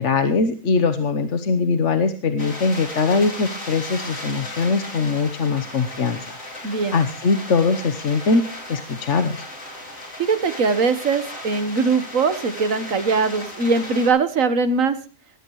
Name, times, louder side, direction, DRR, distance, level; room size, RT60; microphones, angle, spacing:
voice 1, 0.0-9.4, left 4 dB, 60° left, 9 dB, 1.4 m, -22 dB
sound 1, 2.4-14.1, left 1 dB, 75° left, 5.4 m, -36 dB
voice 2, 6.6-7.0 10.2-15.0, right 4 dB, 70° right, 12 dB, 1.7 m, -21 dB
19.0 x 15.5 x 3.1 m, 0.36 s
omnidirectional pair, 1.4 m